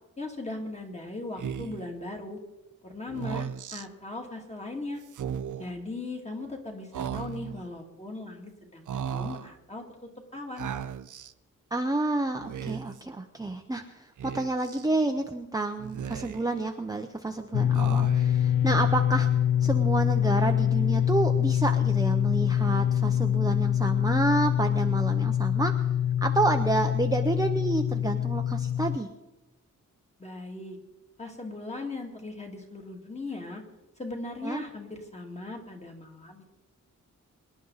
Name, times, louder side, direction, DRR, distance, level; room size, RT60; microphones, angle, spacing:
voice 1, 0.2-2.4 2.8-5.0 5.6-9.8 10.3-10.7 30.2-30.8 31.2-33.6 34.0-36.4, left 2 dB, 20° left, 1 dB, 2.5 m, -38 dB
Speech, 1.4-1.9 3.1-3.9 5.1-5.7 6.9-7.6 8.9-9.5 10.6-11.3 12.4-13.0 14.2-14.9 15.8-16.6 17.7-18.4, right 8 dB, 70° right, 0.6 m, -36 dB
voice 2, 11.7-19.3 19.6-25.7 26.2-29.1 34.4-34.6, right 2 dB, 10° right, 4 dB, 0.7 m, -29 dB
sound 1, 17.5-29.0, left 10 dB, 85° left, 0.5 m, -25 dB
24.5 x 11.0 x 4.0 m, 1.1 s
wide cardioid pair, 140°, 32 cm